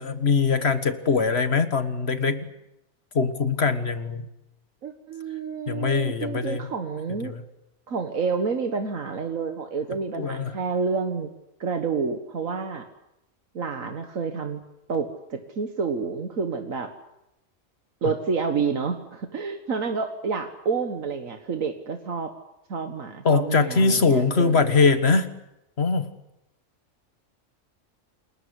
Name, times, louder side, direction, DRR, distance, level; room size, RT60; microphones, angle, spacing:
voice 1, 0.0-2.5 3.1-4.2 5.7-6.7 7.2-7.4 9.9-10.6 23.2-25.3 25.8-26.1, left 4 dB, 50° left, 10 dB, 1.8 m, -22 dB
voice 2, 4.8-7.3 7.9-11.3 11.6-12.9 13.6-14.6 14.9-16.9 18.0-22.3 22.7-24.7, right 5 dB, 85° right, 6 dB, 1.9 m, -29 dB
29.0 x 20.5 x 8.2 m, 0.88 s
omnidirectional pair, 1.4 m